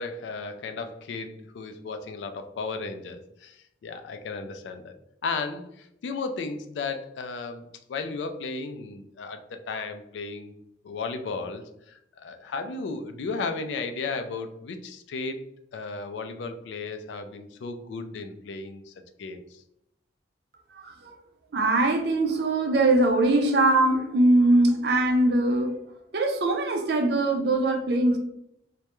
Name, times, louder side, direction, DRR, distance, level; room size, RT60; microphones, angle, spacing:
voice 1, 0.0-4.9 5.2-7.6 7.9-10.5 10.8-15.4 15.7-18.9 19.2-19.6, left 4 dB, 80° left, 8 dB, 0.3 m, -34 dB
voice 2, 20.7-21.2 21.5-25.8 26.1-28.2, right 2 dB, 60° right, 4 dB, 0.4 m, -22 dB
2.2 x 2.1 x 2.9 m, 0.79 s
head